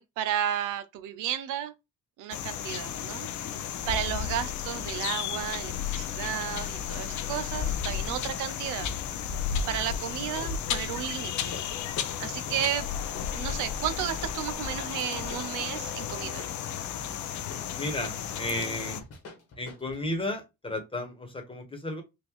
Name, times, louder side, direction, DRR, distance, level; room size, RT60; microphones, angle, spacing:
voice 1, 0.0-1.7 2.2-8.9 9.7-11.6 12.2-12.9 13.3-16.5, right 10 dB, 90° right, 0.5 m, -33 dB
sound 1, 2.3-19.0, left 8 dB, 70° left, 0.6 m, -33 dB
sound 2, 10.3-10.6 11.0-11.1 11.4-20.1, left 3 dB, 50° left, 1.2 m, -47 dB
voice 2, 17.7-19.0 19.6-22.0, left 1 dB, 15° left, 1.2 m, -33 dB
3.7 x 2.5 x 3.0 m
cardioid pair, 90°, 30 cm